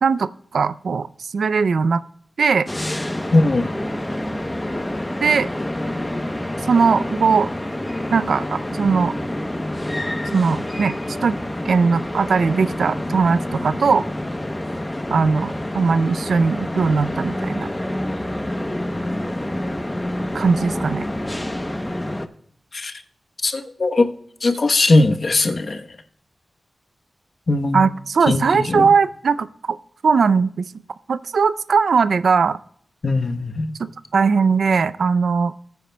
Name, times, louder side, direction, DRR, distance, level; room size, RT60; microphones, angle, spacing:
voice 1, 0.0-2.0 2.4-2.7 5.2-5.5 6.7-7.5 8.1-9.2 10.3-10.9 11.2-11.4 11.6-14.0 15.1-17.7 20.3-21.1 27.7-29.8 30.0-30.7 31.1-32.6 33.8-35.5, right 5 dB, 85° right, 15 dB, 0.4 m, -19 dB
sound 1, 2.7-22.3, left 1 dB, 15° left, 0.8 m, -27 dB
voice 2, 3.3-3.7 22.7-23.0 23.4-24.1 24.4-25.8 27.5-27.8 28.3-28.9 33.0-33.7, left 2 dB, 50° left, 7 dB, 1.0 m, -19 dB
19.5 x 9.3 x 2.2 m, 0.63 s
wide cardioid pair, 90°, 0 cm